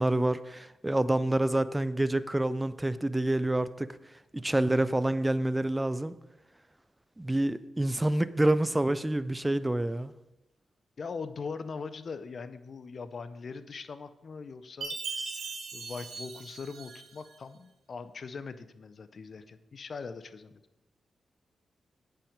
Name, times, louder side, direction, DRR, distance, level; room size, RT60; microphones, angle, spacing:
voice 1, 0.0-4.0 4.3-6.2 7.2-10.1, right 1 dB, 15° right, 0.4 m, -27 dB
voice 2, 11.0-20.6, left 5 dB, 55° left, 0.5 m, -41 dB
Chime, 14.8-17.3, right 4 dB, 80° right, 1.0 m, -39 dB
8.6 x 5.8 x 5.1 m
cardioid pair, 80°, 0 cm